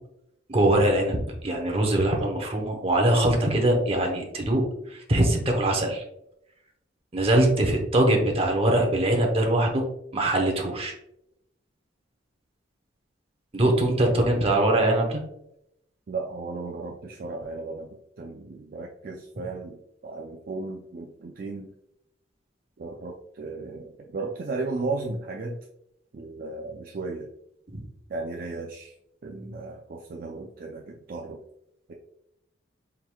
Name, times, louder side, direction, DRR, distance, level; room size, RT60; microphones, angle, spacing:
voice 1, 0.5-1.2 1.4-6.0 7.1-9.8 10.1-10.9 13.5-15.2 27.7-27.8, right 1 dB, 30° right, 2 dB, 0.8 m, -22 dB
voice 2, 16.1-21.7 22.8-25.6 26.1-27.3 28.1-28.9 29.2-31.4, right 3 dB, 50° right, 0 dB, 0.4 m, -35 dB
4.6 x 3.7 x 2.2 m, 0.80 s
head